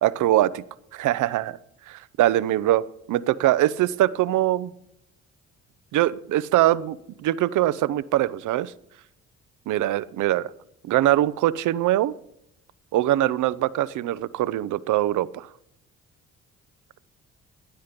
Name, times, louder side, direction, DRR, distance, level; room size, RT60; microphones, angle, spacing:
voice 1, 0.0-0.6 0.9-1.6 1.9-4.7 5.9-8.7 9.7-10.5 10.8-12.1 12.9-15.5, right 14 dB, 80° right, 18 dB, 0.7 m, -22 dB
15.5 x 10.0 x 5.2 m, 0.78 s
cardioid pair, 90°, 30 cm